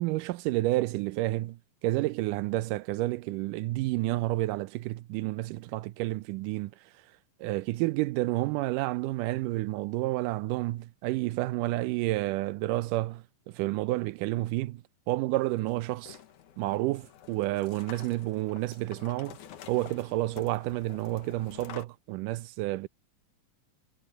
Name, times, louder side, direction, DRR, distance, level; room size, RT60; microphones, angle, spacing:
voice 1, 0.0-6.7 7.4-16.2 16.6-19.4 19.7-22.9, right 18 dB, 80° right, 2.2 m, -30 dB
sound 1, 15.3-21.8, left 9 dB, 65° left, 2.9 m, -49 dB
omnidirectional pair, 3.9 m